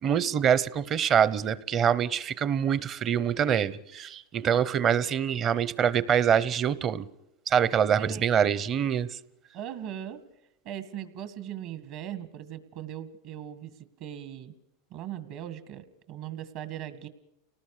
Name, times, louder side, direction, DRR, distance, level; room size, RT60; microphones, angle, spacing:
voice 1, 0.0-7.1 7.5-9.1, right 8 dB, 35° right, 17 dB, 0.8 m, -25 dB
voice 2, 9.5-10.2 10.6-14.5 14.9-17.1, right 10 dB, 60° right, 10 dB, 2.0 m, -39 dB
29.5 x 19.0 x 5.0 m, 0.82 s
supercardioid pair, 125°, 0 cm